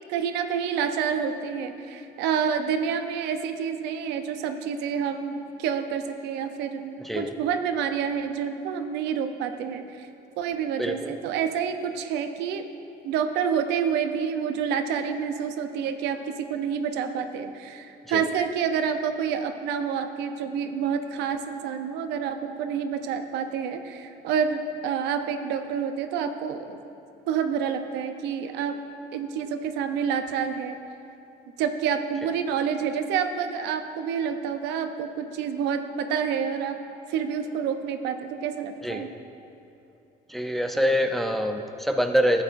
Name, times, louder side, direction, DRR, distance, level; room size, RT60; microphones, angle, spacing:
voice 1, 0.1-10.1 10.4-12.6 13.0-26.8 27.3-28.8 29.1-30.8 31.6-36.8 37.1-39.1 40.8-40.9, right 7 dB, 90° right, 7 dB, 0.6 m, -28 dB
voice 2, 7.0-7.3 10.8-11.1 18.1-18.2 38.8-39.1 40.3-42.4, equal, ahead, 5 dB, 0.5 m, -25 dB
12.0 x 8.4 x 2.5 m, 2.8 s
cardioid pair, 110°, 17 cm